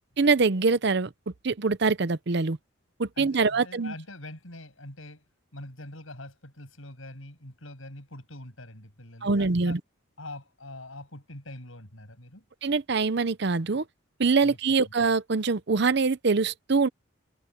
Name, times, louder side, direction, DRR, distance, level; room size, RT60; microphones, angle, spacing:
voice 1, 0.2-1.1 1.4-2.6 3.0-3.9 9.2-9.8 12.6-13.8 14.2-16.9, right 4 dB, 55° right, 0.7 m, -24 dB
voice 2, 3.2-5.2 5.5-9.8 10.2-12.4 14.4-14.6, left 1 dB, 75° left, 7.7 m, -44 dB
head